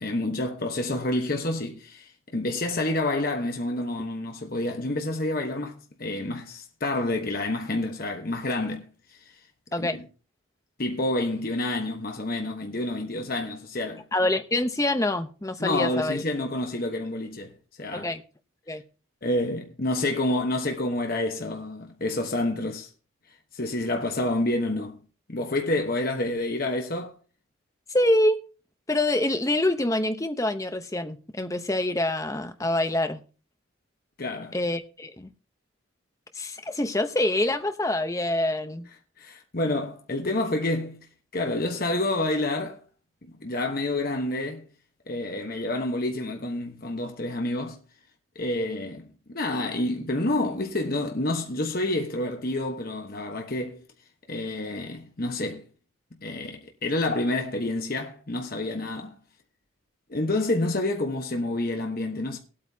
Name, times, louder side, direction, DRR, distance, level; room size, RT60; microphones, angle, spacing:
voice 1, 0.0-8.9 9.8-10.0 10.8-14.0 15.6-18.1 19.2-22.9 23.5-25.0 25.3-27.1 34.2-34.6 39.2-41.1 41.3-42.8 43.4-44.6 45.1-47.8 48.3-53.8 54.3-55.6 56.2-59.1 60.1-62.4, left 2 dB, 45° left, 1.1 m, -28 dB
voice 2, 14.1-16.2 17.9-18.2 18.7-18.8 27.9-28.4 28.9-33.2 34.5-35.3 36.3-38.9, left 1 dB, 15° left, 0.8 m, -26 dB
20.0 x 8.6 x 2.8 m
head